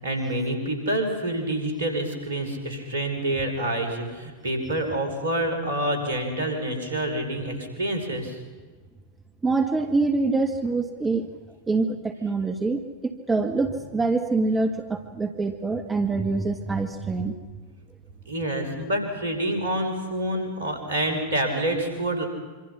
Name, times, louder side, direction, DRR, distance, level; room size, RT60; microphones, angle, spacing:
voice 1, 0.0-8.4 18.3-22.3, right 1 dB, 65° right, 5 dB, 5.7 m, -27 dB
voice 2, 9.4-11.3 11.7-17.3, right 3 dB, 15° right, 6 dB, 1.6 m, -25 dB
27.0 x 25.5 x 5.8 m, 1.4 s
figure-of-eight pair, 90°, 0 cm